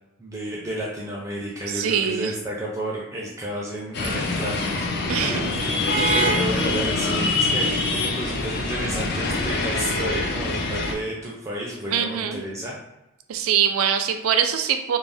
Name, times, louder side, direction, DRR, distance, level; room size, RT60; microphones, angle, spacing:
voice 1, 0.2-5.6 6.1-12.8, right 1 dB, 15° right, -4 dB, 0.4 m, -31 dB
voice 2, 1.7-2.4 5.1-5.5 6.0-6.3 11.9-12.4 13.3-15.0, right 8 dB, 85° right, 6 dB, 0.3 m, -23 dB
sound 1, 3.9-10.9, left 2 dB, 50° left, 0.4 m, -24 dB
2.5 x 2.0 x 3.3 m, 0.94 s
head